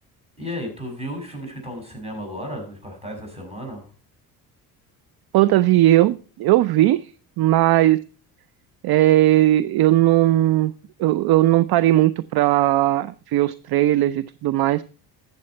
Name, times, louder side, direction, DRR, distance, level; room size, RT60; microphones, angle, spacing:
voice 1, 0.4-3.9, equal, 15° right, 2 dB, 6.3 m, -33 dB
voice 2, 5.3-7.1 7.4-8.0 8.8-10.7 11.0-14.8, right 15 dB, 55° right, 17 dB, 0.5 m, -18 dB
13.0 x 7.6 x 4.3 m, 0.37 s
supercardioid pair, 80°, 46 cm